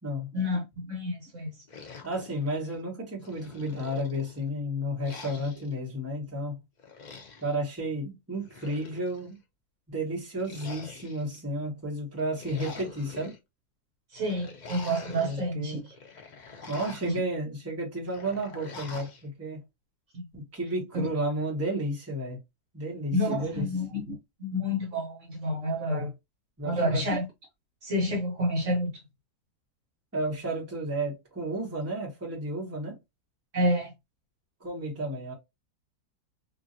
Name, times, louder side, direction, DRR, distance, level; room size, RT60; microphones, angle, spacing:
voice 1, 0.3-1.6 14.1-15.8 17.0-17.2 20.1-20.2 20.9-21.1 23.1-26.1 26.6-27.2 27.8-29.0 33.5-33.9, equal, 55° right, 1.2 m, -29 dB
sound 1, 1.7-2.8 3.2-4.4 5.0-5.7 6.8-7.6 8.3-9.3 10.4-11.4 12.1-13.4 14.2-15.5 15.9-17.2 18.1-19.2, left 4 dB, 65° left, 0.4 m, -45 dB
voice 2, 2.0-6.6 7.4-9.3 9.9-13.3 15.2-15.9 16.7-19.6 20.3-22.4 22.7-23.7 26.6-27.0 30.1-33.0 34.6-35.3, right 1 dB, 10° right, 1.0 m, -32 dB
2.9 x 2.7 x 2.6 m
omnidirectional pair, 1.7 m